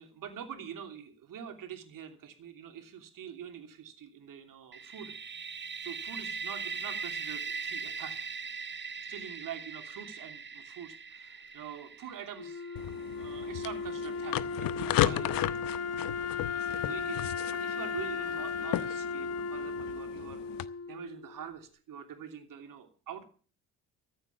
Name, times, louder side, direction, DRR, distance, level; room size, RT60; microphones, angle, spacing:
voice 1, 0.0-5.1 5.8-8.3 9.1-12.6 13.2-15.7 16.0-16.1 16.4-20.4 20.8-23.3, right 8 dB, 55° right, 6 dB, 3.0 m, -45 dB
sound 1, 4.7-14.4, right 5 dB, 25° right, 1.1 m, -40 dB
Wind instrument woodwind instrument, 12.4-21.4, left 5 dB, 35° left, 1.1 m, -36 dB
sound 2, 12.8-20.7, left 14 dB, 55° left, 0.9 m, -35 dB
14.5 x 9.1 x 6.9 m, 0.40 s
hypercardioid pair, 60°, 40 cm